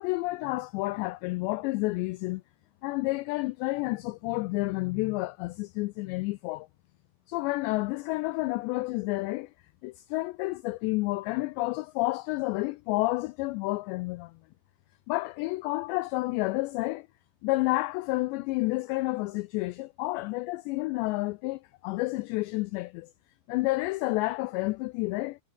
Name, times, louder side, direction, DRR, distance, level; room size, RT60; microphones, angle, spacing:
voice 1, 0.0-2.4 2.8-6.7 7.3-9.5 9.8-14.4 15.1-17.1 17.4-23.1 23.5-25.4, left 21 dB, 90° left, 2.5 m, -30 dB
omnidirectional pair, 5.6 m